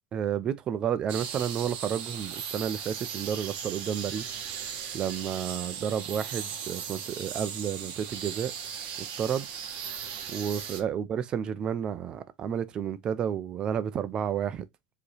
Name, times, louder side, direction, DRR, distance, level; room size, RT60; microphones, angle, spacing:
voice 1, 0.1-4.4 4.9-8.5 9.2-9.5 10.3-14.7, right 8 dB, 25° right, 0.5 m, -31 dB
sound 1, 1.1-10.8, right 8 dB, 40° right, 1.1 m, -37 dB
4.8 x 3.0 x 3.1 m
supercardioid pair, 165°, 3 cm